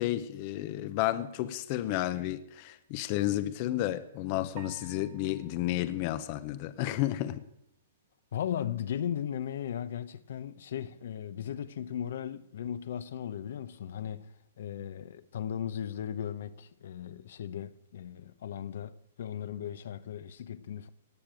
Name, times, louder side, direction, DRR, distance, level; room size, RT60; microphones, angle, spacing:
voice 1, 0.0-7.4, left 14 dB, 35° left, 0.7 m, -32 dB
sound 1, 4.6-7.0, right 10 dB, 40° right, 1.4 m, -54 dB
voice 2, 8.3-14.3 14.6-20.9, left 9 dB, 60° left, 0.8 m, -37 dB
18.0 x 6.7 x 9.0 m
hypercardioid pair, 165°, 0 cm